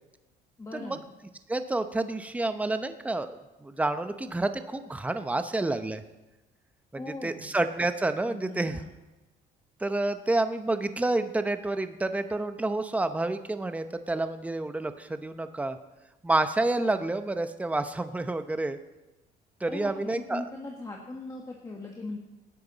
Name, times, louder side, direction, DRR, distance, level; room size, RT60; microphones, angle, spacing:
voice 1, 0.6-1.0 6.9-7.5 8.2-8.9 19.7-22.2, left 2 dB, 20° left, -1 dB, 1.7 m, -39 dB
voice 2, 1.5-6.0 6.9-8.8 9.8-15.8 16.2-18.8 19.6-20.4, right 2 dB, 10° right, 9 dB, 0.8 m, -29 dB
18.0 x 10.5 x 4.1 m, 1.0 s
cardioid pair, 110°, 17 cm